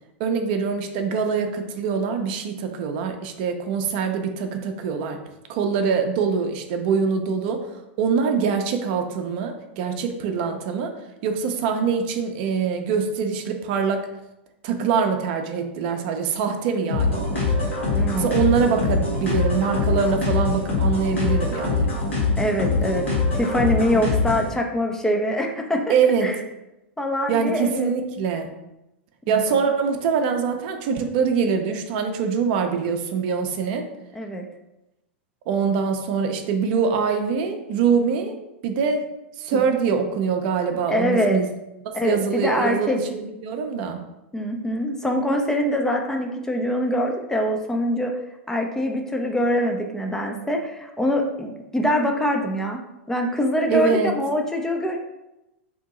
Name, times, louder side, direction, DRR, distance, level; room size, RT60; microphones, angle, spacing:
voice 1, 0.2-5.2 5.5-7.6 8.0-10.9 11.2-14.1 14.6-17.5 18.1-21.9 25.9-26.3 27.3-28.5 29.3-33.8 35.5-38.4 38.6-39.0 39.4-41.5 42.0-44.0 53.7-54.1, right 6 dB, 50° right, 5 dB, 0.5 m, -24 dB
sound 1, 16.9-24.5, left 3 dB, 80° left, 1.4 m, -23 dB
voice 2, 17.9-18.4 22.4-23.0 23.3-25.9 26.2-26.4 27.0-27.9 29.3-29.6 34.1-34.5 39.5-39.6 40.9-41.4 41.9-43.0 44.3-48.1 48.5-52.8 53.1-55.0, equal, 10° left, 2 dB, 0.4 m, -24 dB
2.8 x 2.7 x 3.7 m, 0.92 s
hypercardioid pair, 100°, 7 cm